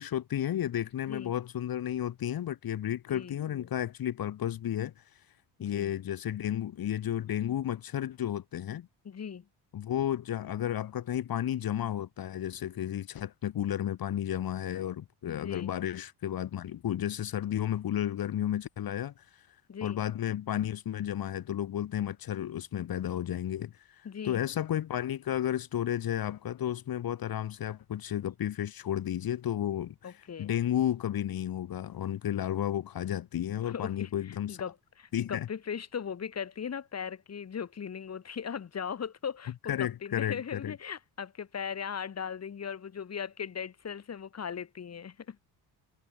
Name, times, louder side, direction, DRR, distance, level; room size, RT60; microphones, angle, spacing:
voice 1, 0.0-5.2 5.6-8.9 9.7-19.5 19.8-34.6 35.1-35.5 39.7-40.7, left 11 dB, 55° left, 3.8 m, -32 dB
voice 2, 3.1-3.7 5.6-5.9 9.0-9.5 15.3-15.7 19.7-20.0 24.0-24.4 30.0-30.5 33.6-45.4, left 7 dB, 35° left, 4.4 m, -38 dB
cardioid pair, 120°, 43 cm